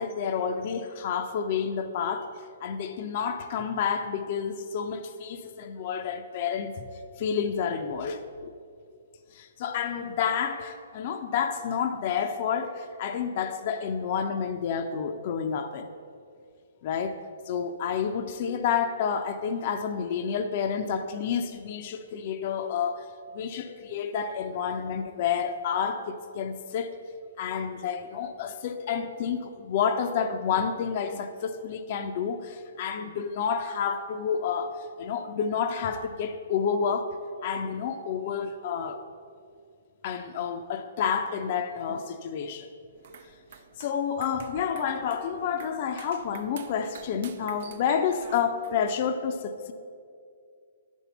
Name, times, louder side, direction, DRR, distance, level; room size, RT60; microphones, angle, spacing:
voice 1, 0.0-6.9 7.2-8.5 9.3-15.9 16.8-17.2 17.5-26.9 27.4-37.2 37.4-39.0 40.0-42.7 43.8-49.7, left 7 dB, 45° left, 0.5 m, -29 dB
sound 1, 42.9-48.9, right 7 dB, 60° right, 0.6 m, -49 dB
10.5 x 4.5 x 6.9 m
hypercardioid pair, 135°, 0 cm